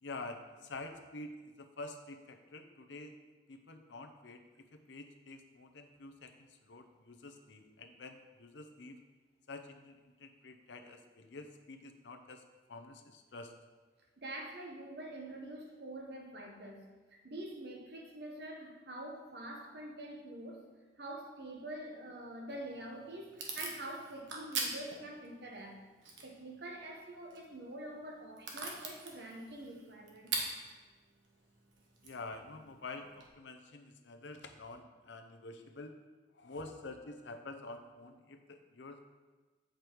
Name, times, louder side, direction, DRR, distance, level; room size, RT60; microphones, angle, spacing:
voice 1, 0.0-3.1 3.5-9.0 9.5-12.4 12.7-13.5 32.0-35.9 36.3-39.1, left 2 dB, 70° left, 6 dB, 0.7 m, -48 dB
voice 2, 14.2-20.6 21.0-25.8 26.2-30.3, right 1 dB, 60° right, 1 dB, 1.1 m, -46 dB
Packing tape duct tape / Tearing, 22.5-33.3, right 3 dB, 80° right, 1.2 m, -44 dB
8.1 x 5.1 x 4.6 m, 1.3 s
head